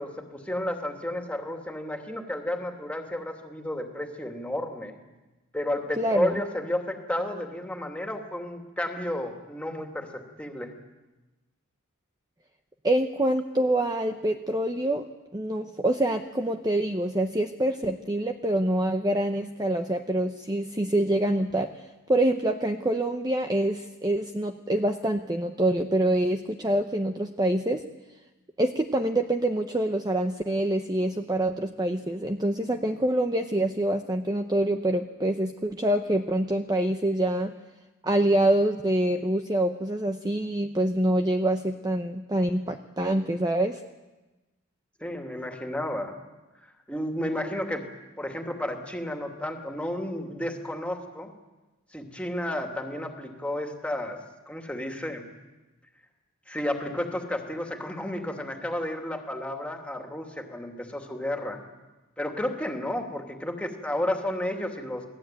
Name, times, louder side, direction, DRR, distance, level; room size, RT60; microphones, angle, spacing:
voice 1, 0.0-5.0 5.5-10.7 45.0-46.2 46.6-47.8 48.2-51.3 51.9-54.2 54.5-55.3 56.5-61.7 62.2-65.0, left 1 dB, 5° left, 3 dB, 2.8 m, -32 dB
voice 2, 6.0-6.4 12.8-15.1 15.3-27.8 28.6-37.5 38.0-43.8, right 1 dB, 20° right, 5 dB, 0.9 m, -26 dB
29.5 x 19.0 x 9.2 m, 1.1 s
head